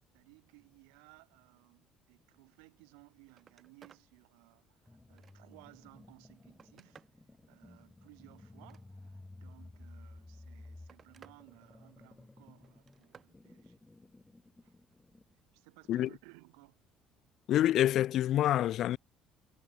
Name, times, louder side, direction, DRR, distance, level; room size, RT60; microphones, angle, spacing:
voice 1, 0.1-13.8 14.6-14.7 15.5-16.8, right 40 dB or more, 75° right, 4.3 m, -60 dB
Telephone, 2.9-3.0 3.3-4.1 4.6-5.6 6.2-7.2 8.5-9.3 10.3-11.4 11.8-12.2 12.6-13.4 15.8-16.2 17.6-17.7, right 7 dB, 45° right, 7.3 m, -61 dB
sound 1, 4.9-15.3, left 2 dB, 15° left, 7.5 m, -55 dB
voice 2, 17.5-19.0, left 12 dB, 60° left, 0.4 m, -27 dB
hypercardioid pair, 55°, 0 cm